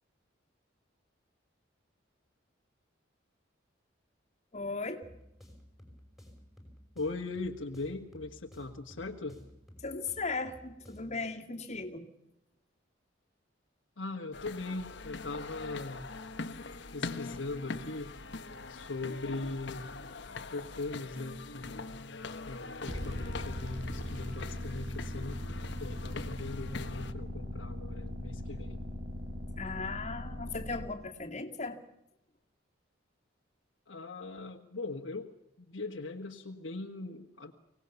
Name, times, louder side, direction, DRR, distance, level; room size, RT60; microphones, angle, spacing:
voice 1, 4.5-5.0 9.8-12.1 29.6-31.8, left 3 dB, 35° left, -1 dB, 2.3 m, -37 dB
sound 1, 5.0-11.2, equal, ahead, 5.7 m, -55 dB
voice 2, 6.9-9.4 14.0-16.1 16.9-18.1 18.7-19.9 20.5-21.8 22.5-25.4 25.8-28.8 33.9-35.3 35.6-37.5, left 3 dB, 80° left, 0 dB, 1.6 m, -40 dB
sound 2, 14.3-27.1, left 3 dB, 65° left, 1.2 m, -43 dB
sound 3, 22.9-30.9, left 1 dB, 70° right, 4.1 m, -39 dB
24.5 x 18.5 x 7.1 m, 0.85 s
head